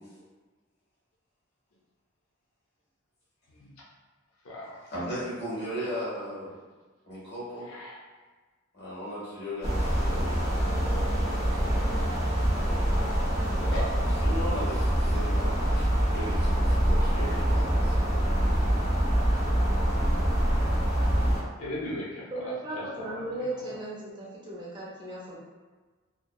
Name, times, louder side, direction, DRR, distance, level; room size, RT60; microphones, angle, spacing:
voice 1, 3.5-3.8 4.4-4.8 7.6-8.0 13.6-13.9 21.6-23.7, left 1 dB, 90° left, -5 dB, 0.6 m, -38 dB
voice 2, 4.9-6.5 7.1-7.7 8.7-10.3 11.2-11.7 14.2-18.1, equal, 55° left, -9 dB, 1.3 m, -37 dB
sound 1, 9.6-21.4, equal, 30° left, 0.9 m, -25 dB
voice 3, 22.3-25.4, right 1 dB, 25° right, -6 dB, 0.5 m, -36 dB
2.7 x 2.1 x 2.3 m, 1.4 s
head